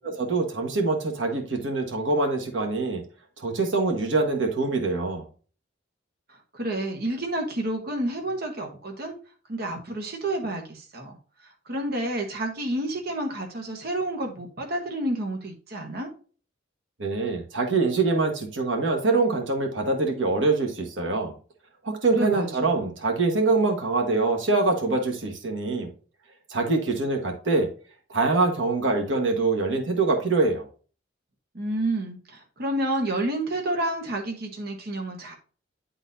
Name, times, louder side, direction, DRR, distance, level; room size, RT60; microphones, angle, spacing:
voice 1, 0.0-3.0 3.4-5.2 17.0-21.3 21.8-25.9 26.5-27.7 28.1-30.6, right 3 dB, 85° right, 1.3 m, -24 dB
voice 2, 6.5-9.2 9.5-11.2 11.4-16.1 22.1-22.8 31.5-35.4, right 1 dB, 55° right, 1.2 m, -30 dB
9.8 x 4.0 x 2.6 m
head